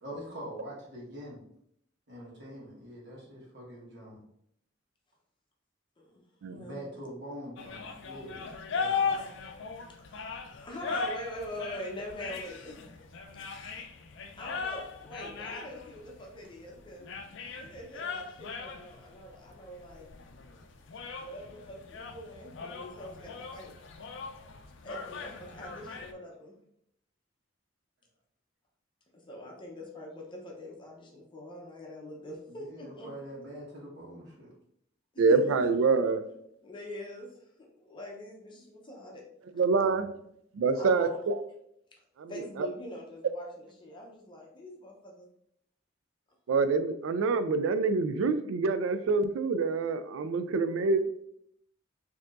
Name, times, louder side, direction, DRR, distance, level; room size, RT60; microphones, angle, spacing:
voice 1, 0.0-1.4 2.1-4.2 6.5-8.4 8.7-9.1 32.5-34.5, equal, 60° right, 1.4 m, -44 dB
voice 2, 6.5-6.8 10.0-10.2 10.6-12.8 14.4-17.1 17.6-20.1 21.2-23.7 24.8-26.5 29.1-33.1 35.1-35.7 36.6-37.4 37.8-39.2 40.7-41.2 41.9-42.0 42.3-45.3, left 1 dB, 25° left, 0.7 m, -43 dB
sound 1, 7.6-26.1, left 5 dB, 65° left, 0.4 m, -39 dB
voice 3, 35.2-36.2 39.6-40.1 40.5-41.4 42.2-42.3 42.6-42.7 46.5-51.1, right 4 dB, 80° right, 0.3 m, -26 dB
4.4 x 2.8 x 2.4 m
head